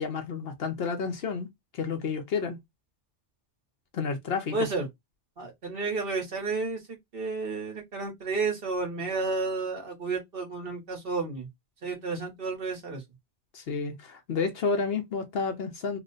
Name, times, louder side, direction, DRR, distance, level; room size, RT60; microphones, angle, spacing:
voice 1, 0.0-1.5 1.7-2.6 3.9-4.5 13.5-16.0, left 5 dB, 65° left, 0.9 m, -30 dB
voice 2, 4.5-4.9 5.4-11.5 11.8-13.0, right 3 dB, 55° right, 1.3 m, -31 dB
3.0 x 2.2 x 3.8 m
omnidirectional pair, 1.2 m